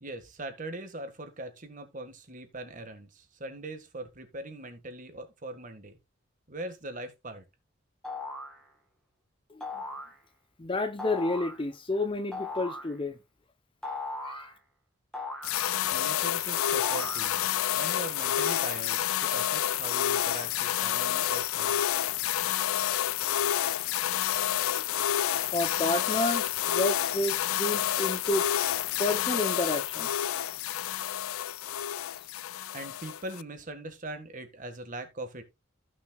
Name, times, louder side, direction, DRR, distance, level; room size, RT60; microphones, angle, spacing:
voice 1, 0.0-6.0 6.5-7.4 15.8-17.5 17.8-22.0 32.7-35.4, right 1 dB, 40° right, 1.7 m, -41 dB
sound 1, 8.0-8.6 9.6-10.2 11.0-11.6 12.3-12.9 13.8-14.5 15.1-16.1 16.8-17.7, left 2 dB, 5° left, 2.2 m, -38 dB
voice 2, 9.5-9.8 10.6-13.2 14.2-14.5 24.6-24.9 25.5-28.5 29.0-30.3, left 2 dB, 25° left, 0.7 m, -31 dB
sound 2, 15.4-33.4, left 11 dB, 90° left, 0.4 m, -29 dB
15.0 x 6.2 x 2.3 m
head